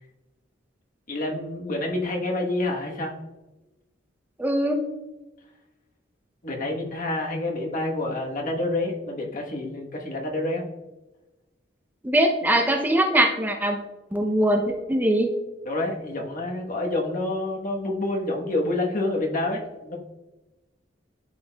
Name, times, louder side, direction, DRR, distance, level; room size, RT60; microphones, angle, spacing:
voice 1, 1.1-3.1 6.4-10.6 15.6-20.0, left 2 dB, 45° left, 0 dB, 1.1 m, -28 dB
voice 2, 4.4-4.8 12.0-13.8 14.1-14.6 14.9-15.3, right 1 dB, 10° right, 4 dB, 0.5 m, -21 dB
11.0 x 4.6 x 2.2 m, 1.1 s
head